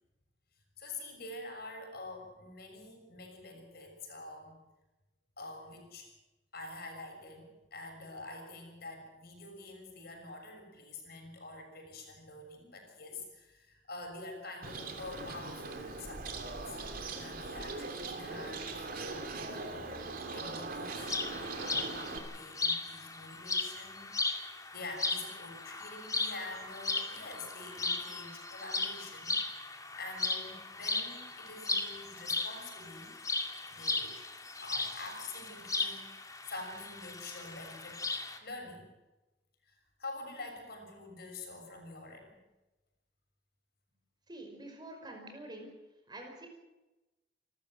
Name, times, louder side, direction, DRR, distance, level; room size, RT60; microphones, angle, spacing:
voice 1, 0.8-4.6 5.4-6.1 6.5-16.8 17.1-19.7 20.3-21.2 22.3-29.7 30.0-33.1 33.7-34.2 34.6-38.0 38.4-38.9 39.6-42.4, left 2 dB, 60° left, 4 dB, 6.6 m, -47 dB
Bird, 14.6-22.2, right 3 dB, 55° right, 2.9 m, -40 dB
sound 1, 21.0-38.4, left 3 dB, 20° left, 2.1 m, -37 dB
voice 2, 44.3-45.7 46.1-46.5, right 1 dB, 25° right, 3 dB, 5.3 m, -46 dB
29.0 x 13.5 x 7.8 m, 1.0 s
head